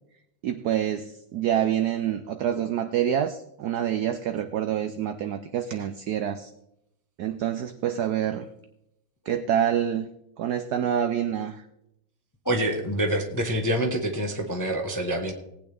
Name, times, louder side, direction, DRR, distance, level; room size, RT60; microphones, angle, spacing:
voice 1, 0.4-6.5 7.2-8.5 9.3-10.1 10.4-11.6, right 10 dB, 70° right, 9 dB, 0.9 m, -27 dB
voice 2, 12.4-15.3, right 1 dB, 15° left, 2 dB, 0.8 m, -26 dB
19.0 x 8.7 x 3.5 m, 0.82 s
omnidirectional pair, 2.2 m